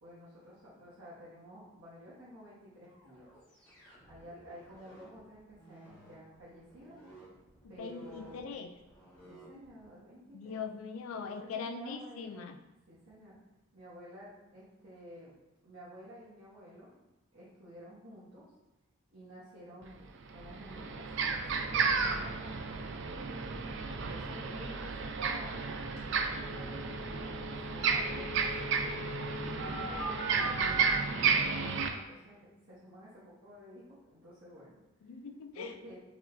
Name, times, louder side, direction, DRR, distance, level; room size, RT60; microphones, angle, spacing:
voice 1, 0.0-3.3 4.1-7.0 7.7-8.6 9.3-10.6 11.3-12.5 12.9-13.4 13.7-15.3 15.6-17.1 17.3-18.5 19.1-23.0 24.0-25.7 26.3-29.1 29.6-35.1 35.5-35.9, equal, 75° right, -10 dB, 1.2 m, -52 dB
sound 1, 2.8-9.9, right 1 dB, 5° left, 1.3 m, -56 dB
voice 2, 7.8-8.7 10.3-12.6 35.0-35.9, left 5 dB, 75° left, 8 dB, 0.4 m, -41 dB
sound 2, 19.8-19.9 20.3-31.9, right 5 dB, 60° right, 0.4 m, -33 dB
sound 3, 26.0-26.1 26.3-30.9, equal, 30° left, 1.3 m, -42 dB
4.8 x 3.1 x 2.6 m, 1.0 s
head